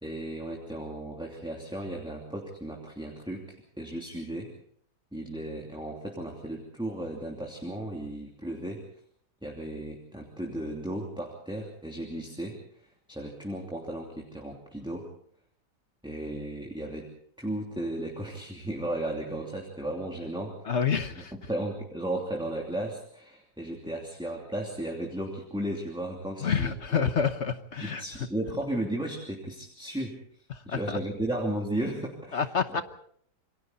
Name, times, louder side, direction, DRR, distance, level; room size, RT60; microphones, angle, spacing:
voice 1, 0.0-4.5 5.1-8.8 9.4-12.6 13.1-15.1 16.0-17.1 17.4-20.6 21.2-27.1 27.8-30.2 30.6-32.8, right 1 dB, 5° right, 0 dB, 2.9 m, -35 dB
voice 2, 20.6-21.3 26.4-28.0 30.5-31.0 32.3-32.8, left 6 dB, 45° left, 10 dB, 1.2 m, -28 dB
27.5 x 24.0 x 4.1 m, 0.62 s
omnidirectional pair, 1.8 m